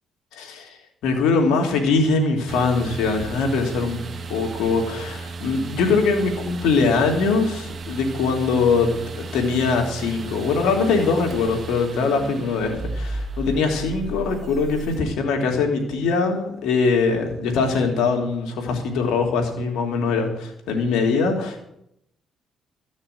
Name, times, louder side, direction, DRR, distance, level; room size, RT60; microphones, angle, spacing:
voice 1, 0.3-0.7 1.0-4.0 4.3-8.9 9.2-21.6, left 4 dB, 85° left, 2 dB, 3.2 m, -22 dB
sound 1, 2.5-15.0, right 3 dB, 45° right, 1.7 m, -34 dB
15.0 x 6.4 x 9.5 m, 0.77 s
cardioid pair, 90°, 0 cm